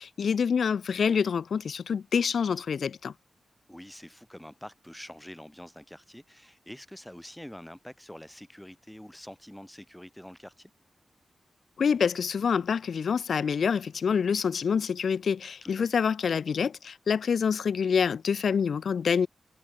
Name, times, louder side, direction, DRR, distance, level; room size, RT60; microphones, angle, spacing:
voice 1, 0.0-3.1 11.8-19.3, left 6 dB, 80° left, 0.4 m, -26 dB
voice 2, 3.7-10.7 15.6-16.0, equal, 5° left, 4.9 m, -46 dB
cardioid pair, 70°, 0 cm